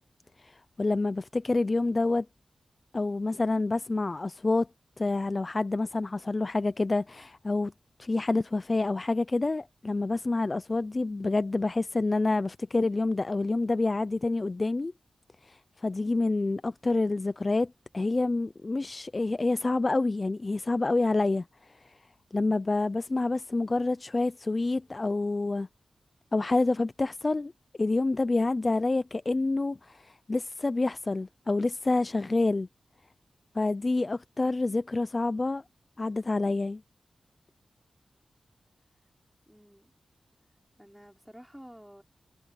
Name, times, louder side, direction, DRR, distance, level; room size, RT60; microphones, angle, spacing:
voice 1, 0.4-2.3 2.9-4.7 5.0-7.7 8.0-14.9 15.5-21.4 22.3-25.7 26.3-27.5 27.8-32.7 33.5-35.6 36.0-36.8, left 3 dB, 35° left, 0.4 m, -28 dB
voice 2, 39.5-39.9 40.8-42.0, equal, 5° right, 3.8 m, -50 dB
wide cardioid pair, 85°, 0 cm